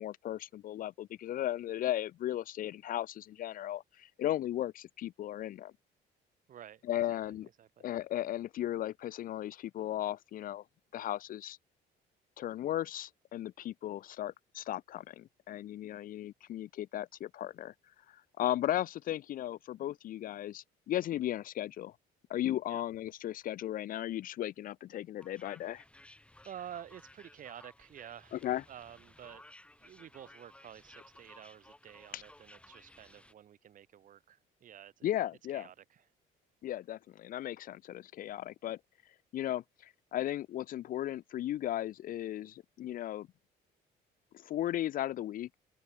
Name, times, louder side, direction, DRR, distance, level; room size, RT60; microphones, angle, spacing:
voice 1, 0.0-5.7 6.8-7.5 7.8-10.6 10.9-11.6 12.4-17.7 18.1-22.0 22.3-25.8 28.3-28.6 32.1-32.2 35.0-35.7 36.6-38.8 39.3-43.3 44.3-45.5, left 12 dB, 55° left, 0.6 m, -36 dB
voice 2, 6.5-6.8 7.1-7.2 7.6-7.8 22.7-22.8 26.4-28.4 28.7-29.4 29.8-35.1 35.5-36.0, right 10 dB, 50° right, 1.9 m, -50 dB
sound 1, 25.2-33.3, left 1 dB, 5° left, 1.7 m, -58 dB
cardioid pair, 110°, 17 cm